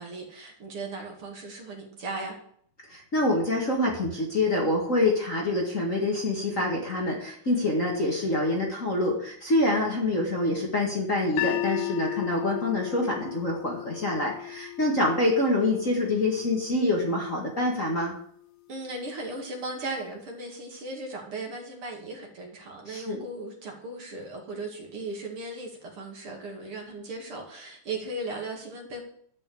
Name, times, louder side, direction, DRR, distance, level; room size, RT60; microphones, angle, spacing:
voice 1, 0.0-2.4 18.7-29.0, right 2 dB, 50° right, 1 dB, 2.8 m, -37 dB
voice 2, 2.9-18.1 22.9-23.2, left 2 dB, 30° left, -3 dB, 2.0 m, -26 dB
sound 1, 11.4-17.5, left 19 dB, 80° left, 1.8 m, -35 dB
12.0 x 5.8 x 8.6 m, 0.63 s
omnidirectional pair, 3.4 m